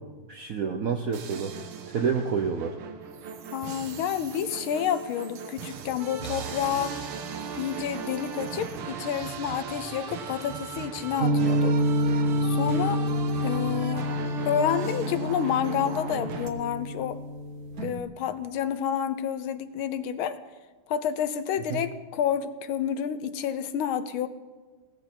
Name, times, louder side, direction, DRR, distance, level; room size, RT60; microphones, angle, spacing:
voice 1, 0.3-1.6 1.9-2.8 21.7-21.8, right 6 dB, 70° right, 6 dB, 0.8 m, -28 dB
sound 1, 1.1-16.5, right 6 dB, 85° right, 2.1 m, -37 dB
voice 2, 3.5-7.0 7.6-11.8 12.4-13.0 13.4-14.1 14.4-17.2 17.8-20.4 20.9-24.3, left 9 dB, 75° left, 12 dB, 1.6 m, -29 dB
sound 2, 11.2-18.0, equal, 45° right, 1.5 m, -28 dB
17.0 x 14.0 x 4.5 m, 1.3 s
omnidirectional pair, 2.4 m